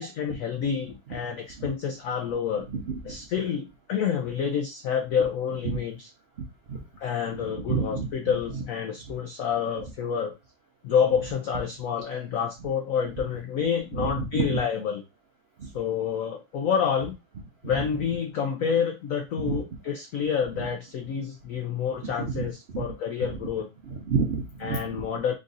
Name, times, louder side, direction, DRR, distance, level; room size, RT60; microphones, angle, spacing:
voice 1, 0.0-2.7 3.1-6.1 7.0-10.3 10.8-15.0 15.6-17.1 17.6-23.7 24.6-25.3, left 7 dB, 85° left, 4 dB, 0.7 m, -28 dB
voice 2, 2.7-3.2 5.6-5.8 6.7-6.8 7.5-8.1 8.5-8.6 13.9-14.6 15.6-15.7 17.7-17.9 19.4-19.6 20.5-20.7 22.0-22.5 22.7-22.8 23.2-23.4 23.8-25.0, right 5 dB, 75° right, 1 dB, 0.5 m, -30 dB
3.8 x 2.5 x 3.9 m, 0.24 s
omnidirectional pair, 2.1 m